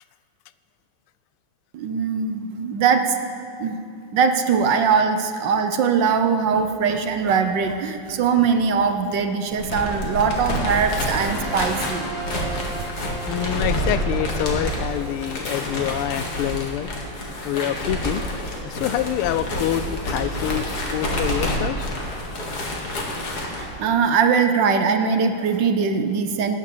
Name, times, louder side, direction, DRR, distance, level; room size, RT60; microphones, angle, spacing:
voice 1, 1.7-3.2 3.6-3.8 4.1-12.1 23.5-26.6, right 6 dB, 65° right, 7 dB, 1.3 m, -21 dB
sound 1, 9.5-23.7, equal, 50° left, 2.3 m, -28 dB
sound 2, 10.5-17.6, right 3 dB, 40° right, 1.8 m, -38 dB
voice 2, 13.3-16.9 17.4-18.2 18.6-20.7 20.9-21.9, left 12 dB, 85° left, 14 dB, 1.5 m, -26 dB
18.5 x 9.8 x 6.7 m, 2.5 s
omnidirectional pair, 2.4 m